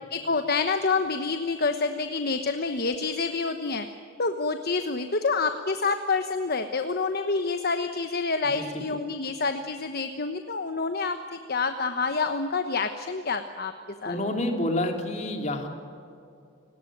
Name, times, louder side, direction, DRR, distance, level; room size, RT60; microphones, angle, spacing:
voice 1, 0.1-3.9 4.2-13.7 14.0-14.1, left 4 dB, 50° left, 7 dB, 1.1 m, -27 dB
voice 2, 8.5-8.9 14.0-15.7, left 1 dB, 35° left, 3 dB, 3.2 m, -28 dB
30.0 x 18.0 x 9.2 m, 2.6 s
head